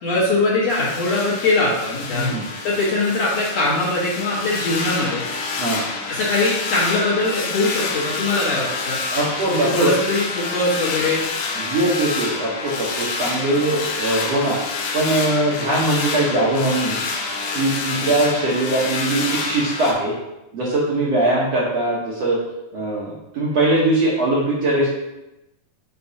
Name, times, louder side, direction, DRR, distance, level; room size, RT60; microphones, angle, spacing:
voice 1, 0.0-2.3 2.6-5.2 6.1-9.0 9.5-11.2 18.0-18.1, left 2 dB, 55° left, -6 dB, 2.2 m, -21 dB
sound 1, 0.7-19.9, left 4 dB, 85° left, 2.7 m, -28 dB
voice 2, 2.1-2.5 5.6-5.8 9.1-9.9 11.6-14.6 14.9-17.0 17.5-20.1 20.5-22.4 22.7-24.9, right 2 dB, 65° right, -7 dB, 1.7 m, -21 dB
6.9 x 6.0 x 2.8 m, 0.94 s
omnidirectional pair, 4.1 m